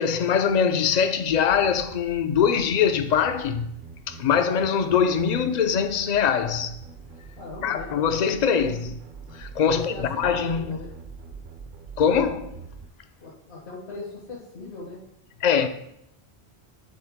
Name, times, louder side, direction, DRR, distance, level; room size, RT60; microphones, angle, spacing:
voice 1, 0.0-3.7 4.1-6.8 7.6-8.9 9.3-10.8 12.0-12.6 15.4-15.7, left 7 dB, 55° left, 0.5 m, -23 dB
sound 1, 1.3-12.9, right 4 dB, 55° right, 0.7 m, -44 dB
voice 2, 7.4-8.2 8.5-8.7 9.7-10.9 13.2-15.0, left 3 dB, 75° left, 1.6 m, -39 dB
9.5 x 3.8 x 3.6 m
omnidirectional pair, 1.1 m